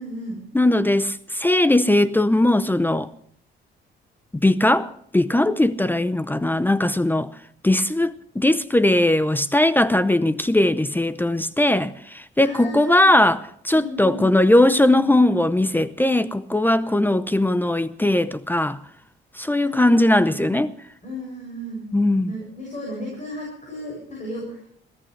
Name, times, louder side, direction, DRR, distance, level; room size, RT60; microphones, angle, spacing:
voice 1, 0.0-0.4 12.4-13.1 13.7-14.3 19.6-20.6 21.0-21.9 22.3-24.7, equal, 35° left, 7.3 m, -35 dB
voice 2, 0.5-3.1 4.4-7.3 7.6-18.8 19.4-20.7 21.9-22.3, left 1 dB, 10° left, 0.6 m, -19 dB
22.0 x 15.0 x 3.3 m
cardioid pair, 90°, 20 cm